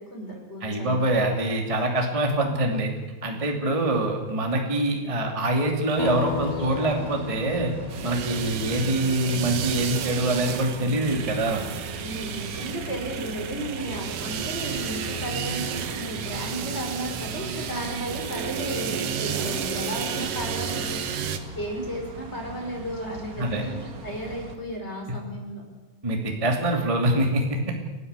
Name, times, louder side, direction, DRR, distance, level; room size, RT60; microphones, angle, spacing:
voice 1, 0.1-1.0 12.0-21.3 21.5-25.6, right 1 dB, 15° left, 1 dB, 5.1 m, -34 dB
voice 2, 0.6-2.9 3.2-7.7 8.0-11.6 23.4-23.6 26.0-27.7, right 1 dB, 10° right, 1 dB, 1.7 m, -24 dB
sound 1, 5.9-24.5, right 2 dB, 35° right, 1.6 m, -41 dB
sound 2, 6.0-9.8, left 13 dB, 85° left, 3.1 m, -35 dB
sound 3, 7.9-21.4, right 7 dB, 75° right, 1.4 m, -32 dB
30.0 x 12.5 x 8.4 m, 1.2 s
omnidirectional pair, 4.9 m